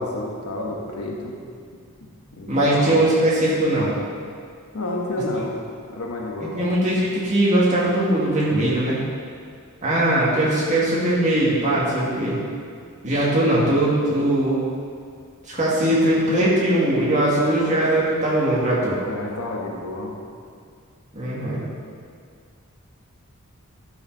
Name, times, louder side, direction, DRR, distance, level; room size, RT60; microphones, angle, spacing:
voice 1, 0.0-1.4 2.3-3.0 4.7-5.6 5.9-6.6 19.0-20.1, left 2 dB, 80° left, -1 dB, 1.4 m, -30 dB
voice 2, 2.5-3.9 6.4-9.0 9.8-12.4 13.0-14.6 15.5-19.0 21.1-21.6, right 1 dB, 30° right, -6 dB, 2.0 m, -20 dB
12.0 x 4.9 x 4.7 m, 2.1 s
head